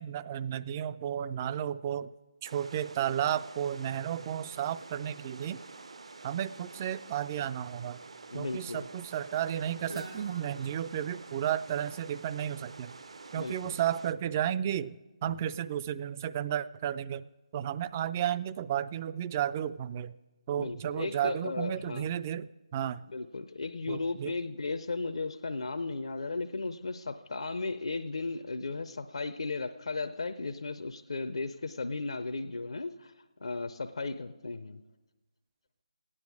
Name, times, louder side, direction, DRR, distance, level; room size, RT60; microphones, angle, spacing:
voice 1, 0.0-2.1 2.4-5.6 6.2-8.0 8.3-12.9 13.3-17.3 17.5-20.1 20.5-23.0 23.9-24.3, right 10 dB, 25° right, 15 dB, 0.3 m, -33 dB
sound 1, 2.4-14.1, right 3 dB, 60° right, 0.7 m, -48 dB
voice 2, 8.3-8.9 13.3-13.7 15.2-15.4 20.6-22.1 23.1-33.1 33.4-34.8, left 3 dB, 65° left, 9 dB, 0.6 m, -35 dB
Guitar, 9.8-13.6, right 1 dB, 80° right, 2.6 m, -49 dB
15.0 x 9.8 x 4.7 m, 1.1 s
figure-of-eight pair, 150°, 3 cm